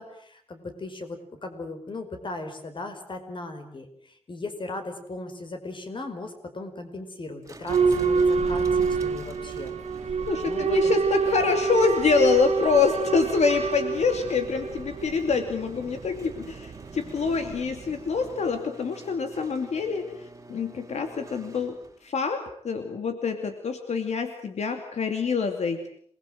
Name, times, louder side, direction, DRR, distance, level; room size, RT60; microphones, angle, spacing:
voice 1, 0.0-9.7 10.4-10.9, left 2 dB, 45° left, 7 dB, 5.0 m, -37 dB
sound 1, 7.4-22.1, right 3 dB, 25° right, 2.9 m, -48 dB
Boat Water vehicle / Alarm, 7.7-18.3, right 5 dB, 75° right, 2.2 m, -27 dB
voice 2, 10.3-21.8 22.0-25.9, left 5 dB, 85° left, 6 dB, 2.7 m, -26 dB
28.0 x 21.0 x 7.8 m, 0.65 s
wide cardioid pair, 120°, 11 cm